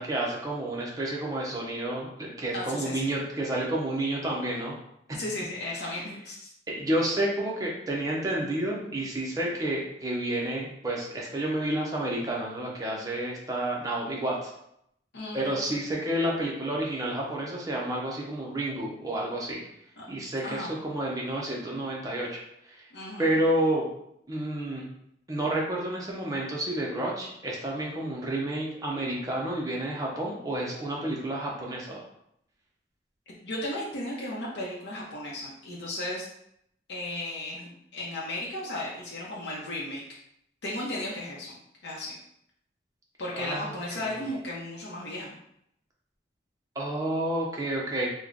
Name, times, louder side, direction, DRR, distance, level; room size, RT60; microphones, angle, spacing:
voice 1, 0.0-4.7 5.8-6.0 6.7-14.5 15.3-19.6 20.1-22.8 23.2-23.9 24.3-24.9 25.3-32.0 43.4-44.1 46.8-48.1, right 1 dB, 20° right, -3 dB, 0.7 m, -30 dB
voice 2, 2.5-3.1 5.1-6.5 15.1-16.0 20.0-20.1 20.4-20.8 22.9-23.4 33.4-36.3 36.9-40.0 40.6-41.6 41.8-42.2 43.2-45.4, left 1 dB, 75° left, -5 dB, 0.7 m, -35 dB
3.1 x 2.1 x 3.7 m, 0.75 s
head